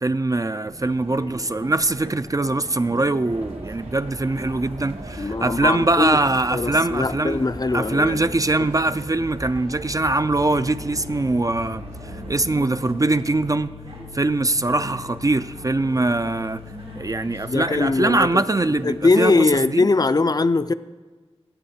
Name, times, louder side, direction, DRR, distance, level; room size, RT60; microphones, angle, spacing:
voice 1, 0.0-7.5 7.7-13.7 14.1-16.6 17.0-19.9, right 2 dB, 30° right, 0.3 m, -22 dB
sound 1, 0.7-19.6, right 1 dB, 60° right, 1.6 m, -42 dB
sound 2, 3.3-12.4, right 1 dB, 90° right, 1.3 m, -38 dB
voice 2, 5.2-6.2 6.5-8.2 8.6-8.7 17.5-20.7, left 3 dB, 35° left, 0.4 m, -21 dB
sound 3, 10.2-18.4, left 8 dB, 80° left, 0.7 m, -42 dB
17.0 x 6.6 x 4.3 m
wide cardioid pair, 55°, 11 cm